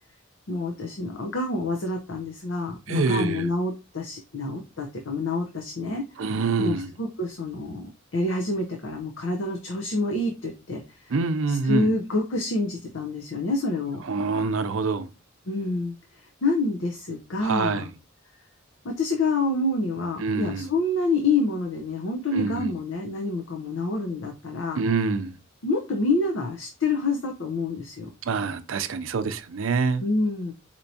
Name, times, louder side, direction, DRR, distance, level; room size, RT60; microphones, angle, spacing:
voice 1, 0.5-6.0 6.6-11.1 11.5-14.0 15.5-17.9 18.8-24.8 25.6-28.1 30.0-30.5, left 2 dB, 70° left, 0.7 m, -27 dB
voice 2, 2.9-3.5 6.2-6.9 11.1-11.9 14.0-15.1 17.4-17.9 20.2-20.7 22.3-22.7 24.8-25.4 28.2-30.1, right 4 dB, 85° right, 0.5 m, -26 dB
4.5 x 2.8 x 2.7 m
head